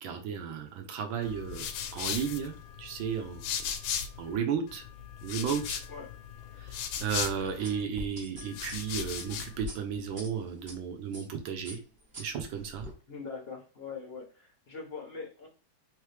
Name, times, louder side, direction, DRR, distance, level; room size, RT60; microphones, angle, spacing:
voice 1, 0.0-1.6 1.9-3.4 4.2-4.8 5.2-5.8 7.0-11.8 12.2-12.8, right 7 dB, 75° right, 6 dB, 1.4 m, -33 dB
sound 1, 1.2-4.4 4.7-7.8 8.4-9.6, left 8 dB, 80° left, 1.4 m, -37 dB
sound 2, 7.6-10.7 11.1-11.4 11.6-12.9, left 1 dB, 30° right, 1.2 m, -44 dB
voice 2, 13.1-15.5, left 5 dB, 60° left, 0 dB, 0.6 m, -42 dB
3.7 x 3.2 x 3.2 m, 0.38 s
omnidirectional pair, 2.2 m